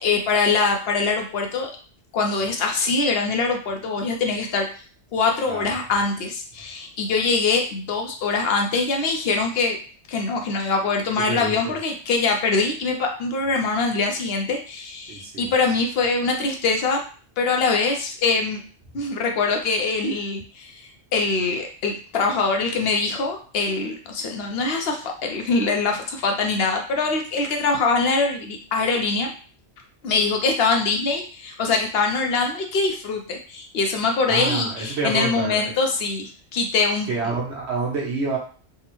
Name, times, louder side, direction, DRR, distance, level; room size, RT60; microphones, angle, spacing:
voice 1, 0.0-1.7 2.1-4.7 5.1-9.8 10.1-17.0 17.4-18.6 18.9-29.3 30.0-37.1, left 4 dB, 65° left, 2 dB, 0.8 m, -23 dB
voice 2, 11.2-11.8 15.1-15.5 34.3-35.7 37.1-38.4, right 4 dB, 75° right, -2 dB, 1.1 m, -28 dB
3.5 x 2.0 x 2.9 m, 0.41 s
omnidirectional pair, 1.1 m